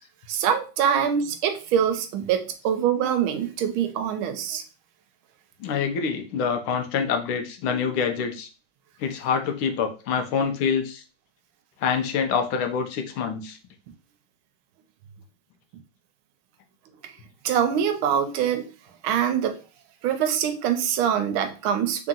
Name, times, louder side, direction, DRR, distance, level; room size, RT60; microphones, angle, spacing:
voice 1, 0.3-4.6 17.4-18.7 19.0-19.6 20.0-22.1, right 8 dB, 80° right, 8 dB, 1.4 m, -24 dB
voice 2, 5.6-8.5 9.0-11.0 11.8-13.6, left 6 dB, 85° left, 5 dB, 1.6 m, -26 dB
3.9 x 2.8 x 3.7 m, 0.33 s
omnidirectional pair, 2.3 m